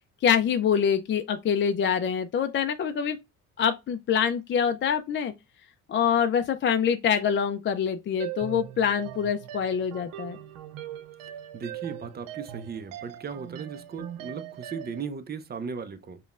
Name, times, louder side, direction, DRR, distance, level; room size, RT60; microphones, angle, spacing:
voice 1, 0.2-3.2 3.6-5.3 5.9-10.4, left 7 dB, 35° left, 0.4 m, -25 dB
sound 1, 8.2-15.1, right 11 dB, 75° right, 0.6 m, -40 dB
voice 2, 11.5-16.2, right 6 dB, 30° right, 0.6 m, -37 dB
5.1 x 2.3 x 2.4 m
supercardioid pair, 70°, 33 cm